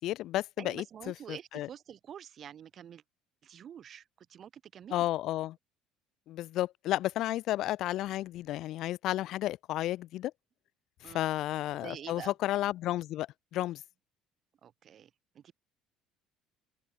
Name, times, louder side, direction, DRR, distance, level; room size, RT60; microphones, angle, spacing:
voice 1, 0.0-1.7 4.9-5.6 6.3-10.3 11.0-13.3 13.5-13.8, left 14 dB, 65° left, 2.8 m, -32 dB
voice 2, 0.6-3.0 3.4-4.0 4.3-5.1 11.0-11.3 11.8-12.3 14.6-15.1 15.3-15.5, right 9 dB, 50° right, 2.4 m, -47 dB
supercardioid pair, 90°, 0 cm